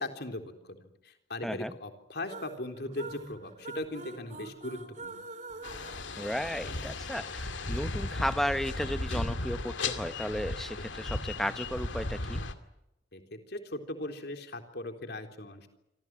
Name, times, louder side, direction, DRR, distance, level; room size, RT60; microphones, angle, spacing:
voice 1, 0.0-5.3 13.1-15.7, left 2 dB, 60° left, 6 dB, 3.7 m, -39 dB
voice 2, 1.4-1.7 6.2-12.4, equal, ahead, 11 dB, 1.1 m, -34 dB
sound 1, 2.2-7.0, right 3 dB, 40° right, 2.6 m, -46 dB
sound 2, 2.9-8.6, equal, 20° right, 3.4 m, -52 dB
sound 3, 5.6-12.5, left 2 dB, 85° left, 2.3 m, -35 dB
27.5 x 25.5 x 6.1 m, 0.90 s
head